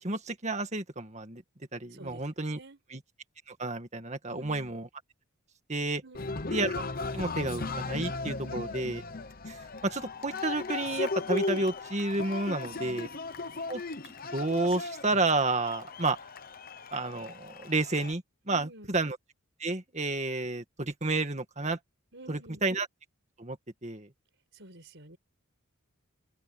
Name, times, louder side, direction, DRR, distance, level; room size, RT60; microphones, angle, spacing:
voice 1, 0.0-1.4 1.7-2.6 2.9-3.0 3.5-4.9 5.7-6.0 6.5-6.8 7.1-9.0 9.5-13.1 13.7-16.2 16.9-19.2 19.6-21.8 22.3-22.9 23.4-23.6 23.8-24.1, right 2 dB, 35° right, 2.1 m, -31 dB
voice 2, 2.5-2.8 4.3-4.7 6.0-6.4 8.4-8.7 12.5-13.0 18.5-18.9 22.1-22.6 24.5-25.2, right 1 dB, 60° right, 6.4 m, -49 dB
Cheering, 6.1-18.1, left 3 dB, 45° left, 1.0 m, -37 dB
open air
head